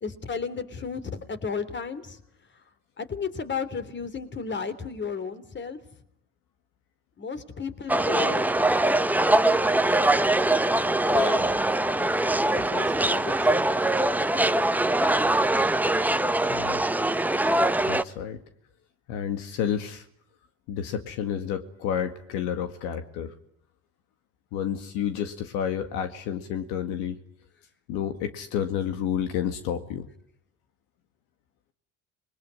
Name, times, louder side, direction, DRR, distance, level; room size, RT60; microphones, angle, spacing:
voice 1, 0.0-1.0 1.3-2.2 3.0-5.8 7.2-8.5 11.1-11.5 12.5-13.7, left 5 dB, 35° left, 12 dB, 3.3 m, -33 dB
sound 1, 7.9-18.0, right 1 dB, 5° right, 1.0 m, -23 dB
voice 2, 16.5-16.8 17.9-18.4 19.1-20.0 20.7-23.3 24.5-27.2 27.9-30.1, left 9 dB, 75° left, 8 dB, 2.1 m, -30 dB
27.5 x 21.5 x 9.7 m, 0.72 s
supercardioid pair, 75°, 32 cm